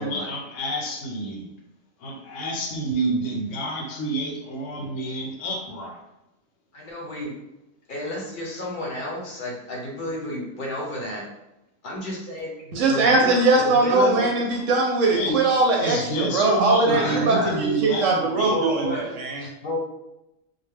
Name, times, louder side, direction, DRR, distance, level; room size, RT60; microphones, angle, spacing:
voice 1, 0.0-1.5 2.0-6.0 15.1-18.7, right 1 dB, 70° left, 0 dB, 0.9 m, -29 dB
voice 2, 6.7-7.3 7.9-11.2 11.8-14.3 16.9-17.7 18.5-19.0 19.6-19.8, left 1 dB, 45° left, -3 dB, 0.8 m, -31 dB
voice 3, 12.7-19.5, right 3 dB, 70° right, 0 dB, 0.9 m, -21 dB
2.3 x 2.1 x 3.3 m, 0.89 s
omnidirectional pair, 1.4 m